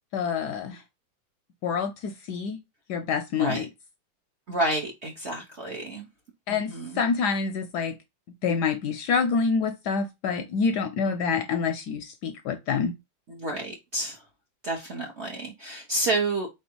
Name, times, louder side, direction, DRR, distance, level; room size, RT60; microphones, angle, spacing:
voice 1, 0.1-0.8 1.6-2.6 2.9-3.7 6.5-6.7 7.0-8.0 8.4-12.9, left 5 dB, 75° left, 1.0 m, -27 dB
voice 2, 4.5-6.1 6.5-7.0 13.3-14.2 14.6-16.5, right 2 dB, 55° right, 0.8 m, -30 dB
4.3 x 3.5 x 2.8 m
omnidirectional pair, 2.1 m